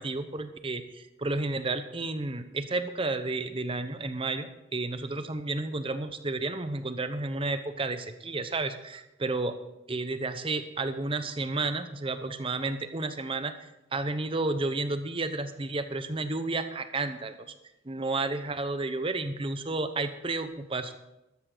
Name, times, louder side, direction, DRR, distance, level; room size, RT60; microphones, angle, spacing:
voice 1, 0.0-9.6 9.9-13.5 13.9-17.5 17.8-20.9, right 3 dB, 30° right, 9 dB, 0.9 m, -31 dB
13.0 x 12.5 x 3.9 m, 0.93 s
head